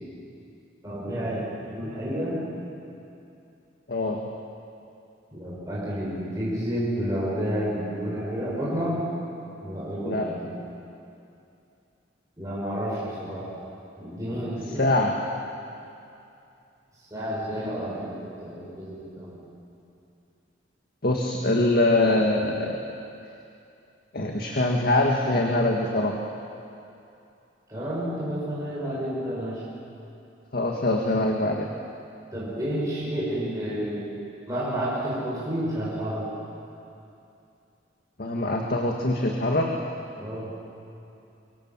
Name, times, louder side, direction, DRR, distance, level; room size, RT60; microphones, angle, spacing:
voice 1, 0.8-2.4 5.3-9.0 9.6-10.5 12.4-13.5 14.0-14.9 17.1-18.1 18.4-19.4 27.7-29.6 32.3-34.0 34.5-36.3 40.1-40.5, equal, 20° right, -7 dB, 6.3 m, -30 dB
voice 2, 3.9-4.2 10.0-10.3 14.8-15.1 21.0-22.8 24.1-26.1 30.5-31.7 38.2-39.7, left 2 dB, 55° left, 1 dB, 1.9 m, -23 dB
25.0 x 24.0 x 7.5 m, 2.7 s
head